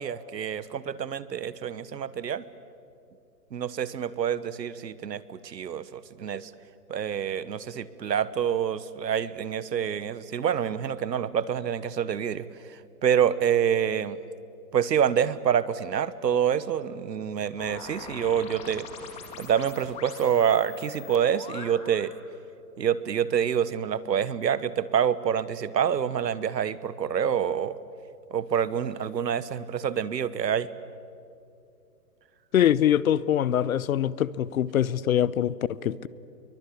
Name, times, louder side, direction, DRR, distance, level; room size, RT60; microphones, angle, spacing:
voice 1, 0.0-2.4 3.5-6.5 6.9-14.2 14.7-18.9 19.4-22.1 22.8-27.8 28.3-30.7, right 8 dB, 90° right, 16 dB, 1.3 m, -27 dB
sound 1, 17.6-22.2, left 6 dB, 15° left, 1.8 m, -43 dB
voice 2, 32.5-36.1, left 10 dB, 55° left, 20 dB, 0.8 m, -24 dB
27.5 x 23.0 x 8.5 m, 2.6 s
hypercardioid pair, 160°, 49 cm